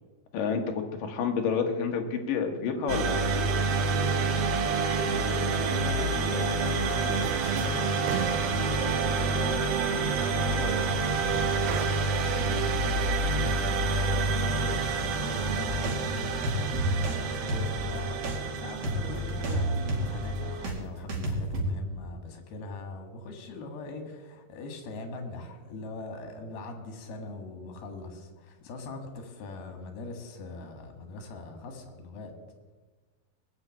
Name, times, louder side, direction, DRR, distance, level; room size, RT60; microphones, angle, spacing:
voice 1, 0.3-3.4, left 6 dB, 65° left, 4 dB, 2.9 m, -29 dB
sound 1, 2.9-20.7, right 3 dB, 65° right, 1.6 m, -28 dB
voice 2, 5.1-32.3, left 3 dB, 85° left, 6 dB, 3.7 m, -41 dB
sound 2, 6.9-7.0 7.2-7.8 8.0-11.2 11.7-11.9, right 11 dB, 90° right, 2.5 m, -38 dB
sound 3, 15.3-20.7 21.1-21.7, right 1 dB, 50° right, 3.3 m, -31 dB
19.5 x 6.6 x 8.6 m, 1.3 s
omnidirectional pair, 4.3 m